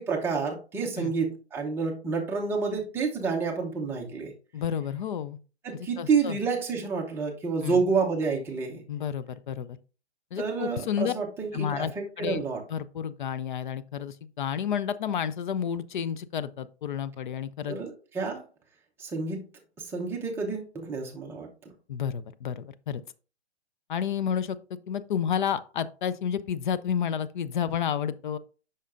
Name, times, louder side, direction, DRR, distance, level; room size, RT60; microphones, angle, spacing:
voice 1, 0.0-4.3 5.6-8.8 10.4-12.6 17.7-18.4 19.0-19.5 19.8-21.5, right 5 dB, 5° right, 0.7 m, -29 dB
voice 2, 4.5-5.4 6.0-6.4 7.6-7.8 8.9-9.8 10.3-11.1 11.5-12.4 12.7-17.8 21.9-23.0 23.9-24.6 24.9-28.4, left 8 dB, 50° left, 0.5 m, -30 dB
8.2 x 5.7 x 2.5 m
hypercardioid pair, 145°, 33 cm